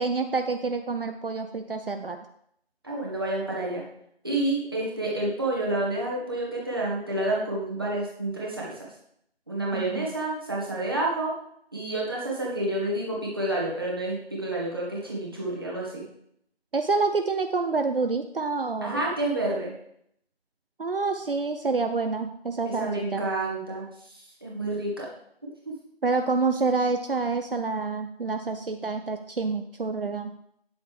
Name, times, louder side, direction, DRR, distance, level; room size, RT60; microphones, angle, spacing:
voice 1, 0.0-2.2 9.7-10.1 16.7-19.0 20.8-23.2 26.0-30.3, right 4 dB, 60° right, 7 dB, 0.7 m, -27 dB
voice 2, 2.8-3.8 4.2-8.9 9.5-11.3 11.7-16.1 18.8-19.7 22.6-25.1 25.4-25.7, right 1 dB, 20° right, -4 dB, 1.6 m, -29 dB
9.3 x 8.1 x 3.4 m, 0.71 s
figure-of-eight pair, 180°, 31 cm